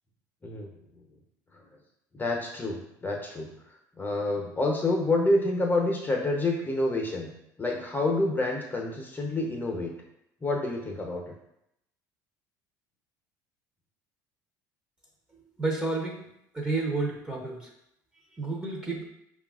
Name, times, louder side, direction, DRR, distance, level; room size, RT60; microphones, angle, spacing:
voice 1, 2.1-3.5 4.0-7.3 7.6-9.9 10.4-11.2, left 2 dB, 20° left, 0 dB, 0.8 m, -28 dB
voice 2, 15.6-16.2 16.5-17.7 18.4-19.0, right 3 dB, 10° right, -2 dB, 0.9 m, -30 dB
5.2 x 2.4 x 2.4 m, 0.78 s
hypercardioid pair, 75°, 9 cm